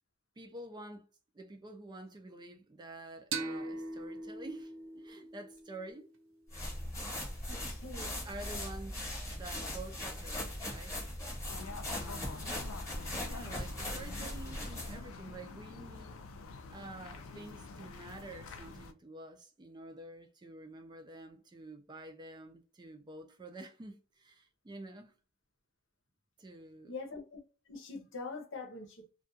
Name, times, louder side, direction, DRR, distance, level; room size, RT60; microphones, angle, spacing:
voice 1, 0.4-1.1 1.3-6.1 8.0-9.0 9.3-11.0 11.9-12.5 13.2-16.2 16.7-25.1 26.4-26.9, right 2 dB, 20° right, 0.4 m, -49 dB
sound 1, 3.3-6.7, right 3 dB, 80° right, 0.6 m, -42 dB
sound 2, 6.5-15.1, left 1 dB, 15° left, 1.1 m, -40 dB
voice 2, 7.4-8.3 12.4-12.7 26.9-27.4 27.7-29.1, left 3 dB, 65° left, 0.8 m, -44 dB
sound 3, 11.5-18.9, left 3 dB, 85° left, 0.4 m, -47 dB
2.3 x 2.3 x 2.6 m
head